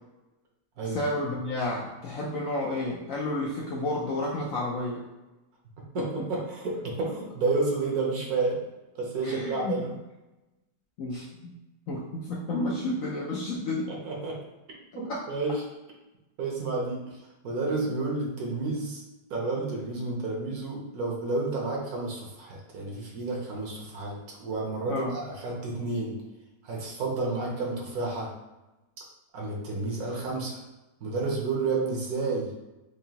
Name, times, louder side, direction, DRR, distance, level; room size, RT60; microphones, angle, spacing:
voice 1, 0.8-5.0 9.2-9.8 11.0-11.5 11.9-13.9 24.9-25.1, left 2 dB, 65° left, -3 dB, 0.8 m, -31 dB
voice 2, 5.9-8.7 9.0-9.9 13.9-14.4 15.3-15.6 16.4-17.2 17.4-19.0 19.3-26.2 26.6-28.3 29.3-30.6 31.0-32.5, right 3 dB, 65° right, -1 dB, 1.2 m, -30 dB
4.8 x 2.6 x 2.8 m, 1.0 s
omnidirectional pair, 1.9 m